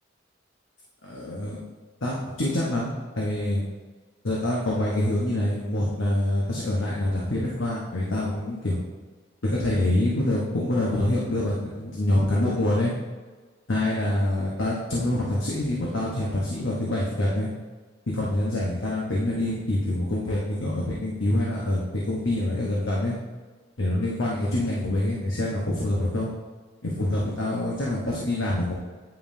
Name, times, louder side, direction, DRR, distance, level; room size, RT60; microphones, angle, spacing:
voice 1, 1.0-1.6 2.0-3.6 4.2-8.8 9.4-12.9 13.7-17.5 18.1-23.1 23.8-26.3 26.8-28.7, left 1 dB, 85° left, -4 dB, 1.1 m, -26 dB
9.3 x 5.4 x 2.7 m, 1.4 s
head